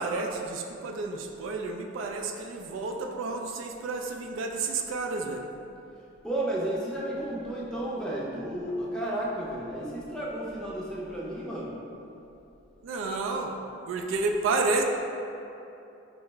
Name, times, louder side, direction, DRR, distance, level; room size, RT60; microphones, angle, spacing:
voice 1, 0.0-5.5 12.8-13.6 13.9-14.8, right 3 dB, 70° right, 3 dB, 0.3 m, -30 dB
voice 2, 6.2-11.7, right 1 dB, 5° left, -6 dB, 0.5 m, -32 dB
4.6 x 2.0 x 3.3 m, 2.8 s
head